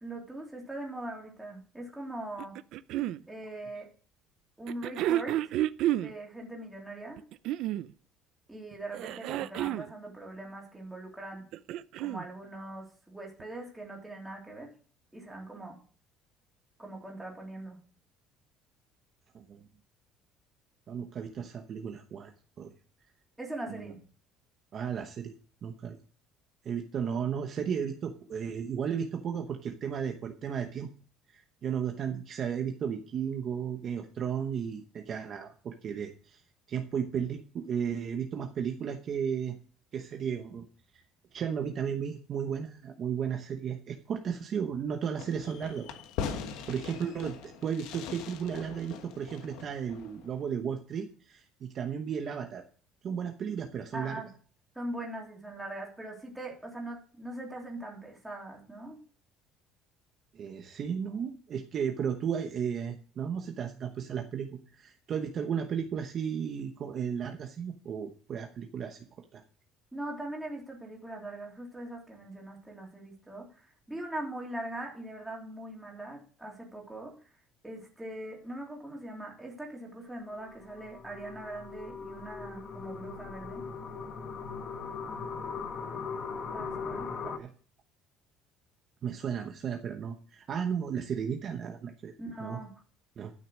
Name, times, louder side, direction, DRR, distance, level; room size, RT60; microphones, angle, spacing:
voice 1, 0.0-2.6 3.3-3.9 4.6-5.5 6.0-7.2 8.5-11.4 12.0-14.7 15.1-15.8 16.8-17.8 23.4-24.0 46.2-46.6 53.9-54.3 54.7-59.0 69.9-77.3 77.6-83.7 86.5-87.1 92.2-92.7, right 1 dB, 5° right, -2 dB, 3.1 m, -41 dB
sound 1, 2.4-3.2 4.7-6.1 7.2-7.9 8.9-9.9 11.3-12.3 13.4-13.5, right 13 dB, 60° right, 0.5 m, -30 dB
voice 2, 19.3-19.7 20.9-22.7 23.7-23.9 24.7-25.3 25.6-26.0 26.6-30.9 31.3-36.4 36.7-39.6 39.9-40.6 40.9-41.0 41.3-45.9 46.7-52.6 53.0-54.2 60.3-69.4 85.0-85.2 87.2-87.5 89.0-92.1 92.4-92.6 93.2-93.3, right 7 dB, 35° right, 4 dB, 1.0 m, -34 dB
Fireworks, 45.2-50.4, left 7 dB, 75° left, 1.4 m, -41 dB
sound 2, 80.4-87.4, left 5 dB, 35° left, 1.1 m, -39 dB
12.0 x 6.5 x 6.4 m, 0.42 s
cardioid pair, 165°, 0 cm